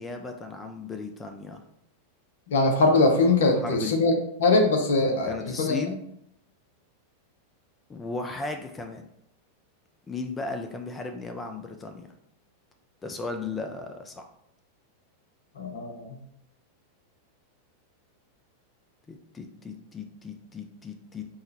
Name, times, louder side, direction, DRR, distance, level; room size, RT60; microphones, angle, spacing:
voice 1, 0.0-1.6 3.6-4.0 5.2-6.0 7.9-9.1 10.1-12.1 13.0-14.2 19.1-21.2, left 3 dB, 15° left, 5 dB, 0.4 m, -36 dB
voice 2, 2.5-4.1 4.4-5.8 15.6-16.1, left 3 dB, 60° left, 3 dB, 0.7 m, -22 dB
5.4 x 2.1 x 2.7 m, 0.74 s
figure-of-eight pair, 90°, 0 cm